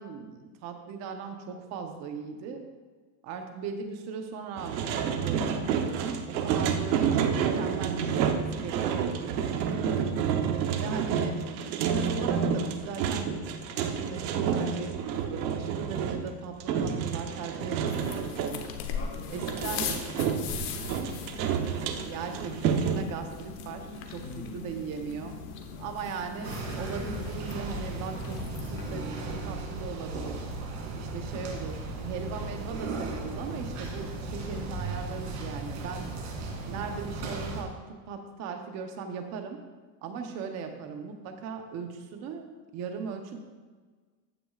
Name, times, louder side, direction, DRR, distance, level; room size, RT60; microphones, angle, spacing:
voice 1, 0.0-2.7 3.2-10.1 10.8-13.4 13.8-18.7 19.3-19.9 22.1-25.4 25.8-30.5 30.9-36.2 36.7-39.6 40.0-42.5 42.7-43.4, right 5 dB, 30° right, 5 dB, 0.9 m, -38 dB
sound 1, 4.6-18.6 19.3-23.0, right 7 dB, 80° right, 1.1 m, -29 dB
sound 2, 17.8-29.0, left 6 dB, 45° left, 1.1 m, -39 dB
voice 2, 18.9-21.6 24.2-24.6 25.7-25.9, left 3 dB, 30° left, -7 dB, 2.4 m, -45 dB
sound 3, 26.4-37.6, right 2 dB, 60° right, 2.7 m, -36 dB
14.5 x 9.4 x 2.5 m, 1.4 s
cardioid pair, 175°, 50 cm